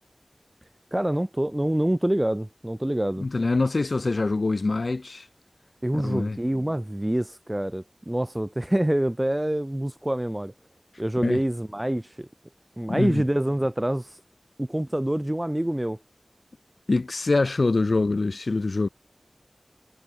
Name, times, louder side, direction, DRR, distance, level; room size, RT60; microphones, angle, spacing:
voice 1, 0.9-3.3 5.8-10.5 11.0-12.3 12.8-14.2 14.6-16.0, right 1 dB, 20° right, 4.6 m, -26 dB
voice 2, 3.2-5.3 5.9-6.4 11.2-11.4 12.9-13.2 16.9-18.9, left 3 dB, 75° left, 5.5 m, -24 dB
wide cardioid pair, 55°, 0 cm